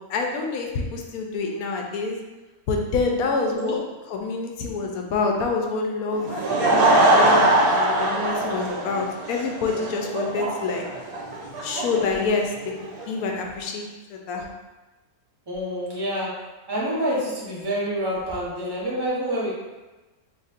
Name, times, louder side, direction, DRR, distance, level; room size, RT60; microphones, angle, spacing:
voice 1, 0.0-2.2 2.7-3.8 4.1-10.8 11.6-12.5 13.1-13.8 14.1-14.4, left 4 dB, 75° left, 1 dB, 1.0 m, -27 dB
voice 2, 3.3-3.8 9.6-9.8 15.5-16.3 16.7-19.5, equal, 20° right, -7 dB, 0.7 m, -27 dB
Laughter / Crowd, 6.1-13.1, right 1 dB, 80° right, 1.2 m, -22 dB
4.0 x 2.9 x 2.5 m, 1.1 s
omnidirectional pair, 1.6 m